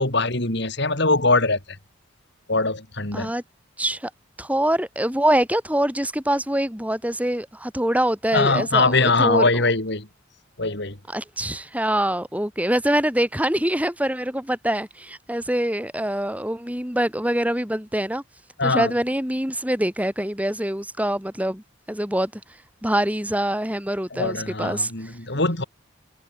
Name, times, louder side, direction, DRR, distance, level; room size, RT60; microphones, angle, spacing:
voice 1, 0.0-1.6 2.5-3.3 8.3-10.1 10.6-11.0 18.6-18.9 24.1-25.6, left 3 dB, 60° left, 3.9 m, -22 dB
voice 2, 3.8-4.1 4.4-9.4 11.1-18.2 18.6-21.6 21.9-22.3 22.8-24.9, right 1 dB, 5° right, 4.8 m, -24 dB
head